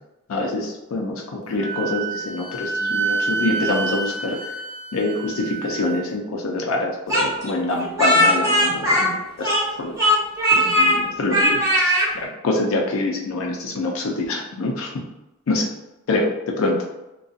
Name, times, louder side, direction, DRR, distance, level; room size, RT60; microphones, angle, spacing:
voice 1, 0.3-4.4 4.9-9.5 9.8-9.9 10.5-15.0 15.5-15.7 16.1-16.8, left 2 dB, 70° left, 0 dB, 0.4 m, -25 dB
Wind instrument woodwind instrument, 1.6-6.0, right 4 dB, 50° right, 0.3 m, -28 dB
Speech, 7.1-9.7 10.0-11.0 11.3-12.1, equal, 15° right, 0.8 m, -18 dB
2.6 x 2.2 x 2.4 m, 0.94 s
head